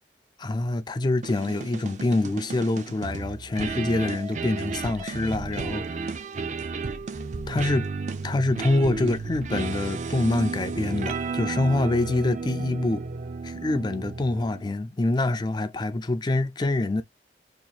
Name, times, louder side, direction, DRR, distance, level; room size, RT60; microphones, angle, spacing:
voice 1, 0.4-6.1 7.5-7.9 8.2-13.0 13.4-17.0, left 2 dB, 25° left, 0.3 m, -25 dB
sound 1, 1.2-14.7, right 4 dB, 45° right, 0.4 m, -33 dB
2.9 x 2.4 x 3.9 m
head